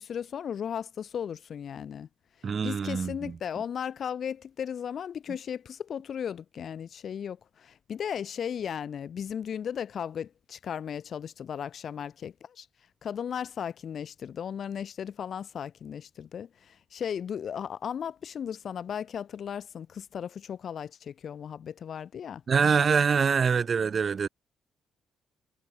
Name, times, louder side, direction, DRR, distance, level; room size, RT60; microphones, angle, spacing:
voice 1, 0.0-2.1 2.6-12.7 13.0-22.4, left 8 dB, 55° left, 1.6 m, -36 dB
voice 2, 2.4-3.1 22.5-24.3, right 6 dB, 45° right, 0.5 m, -24 dB
cardioid pair, 90°, 0 cm